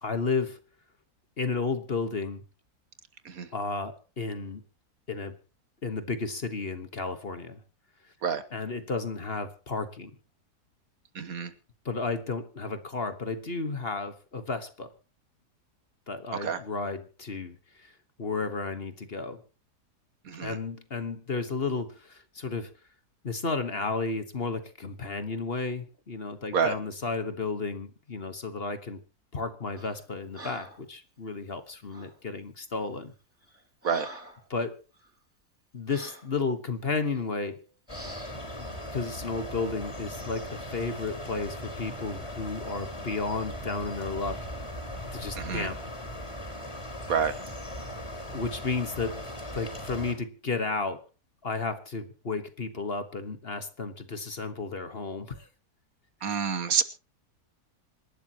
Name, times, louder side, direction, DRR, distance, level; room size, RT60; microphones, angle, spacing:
voice 1, 0.0-0.6 1.4-2.4 3.5-4.6 5.1-5.3 5.8-7.6 8.5-10.1 11.8-14.9 16.1-17.9 18.2-19.4 20.4-22.7 23.2-29.0 29.3-33.1 34.5-34.8 35.7-37.6 38.6-44.5 45.1-45.8 48.3-49.2 49.5-51.0 51.4-55.5 56.2-56.4, left 4 dB, 40° left, 10 dB, 1.4 m, -33 dB
voice 2, 11.1-11.5 16.4-16.6 20.3-20.6 26.5-26.7 33.8-34.1 45.3-45.7 47.1-47.3 56.2-56.8, right 6 dB, 65° right, 12 dB, 1.6 m, -28 dB
Breathing, 29.8-30.0 30.3-30.9 31.9-32.2 32.8-33.0 33.4-34.5 34.9-35.1 35.9-36.3 37.0-37.2 37.9-38.4, right 1 dB, 10° right, 4.6 m, -46 dB
sound 1, 37.9-50.1, left 1 dB, 20° left, 4.6 m, -38 dB
27.0 x 12.0 x 2.9 m, 0.32 s
omnidirectional pair, 1.7 m